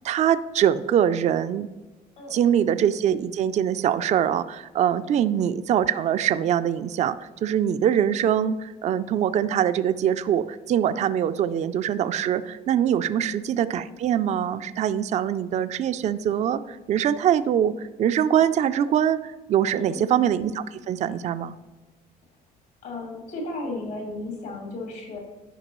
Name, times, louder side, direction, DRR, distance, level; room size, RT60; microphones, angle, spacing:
voice 1, 0.0-1.7 2.3-21.5, right 9 dB, 45° right, 12 dB, 0.4 m, -23 dB
voice 2, 2.2-2.5 5.0-5.2 13.1-13.2 19.7-20.1 22.8-25.2, left 2 dB, 75° left, 0 dB, 2.1 m, -35 dB
11.0 x 5.2 x 3.0 m, 1.2 s
cardioid pair, 110°, 17 cm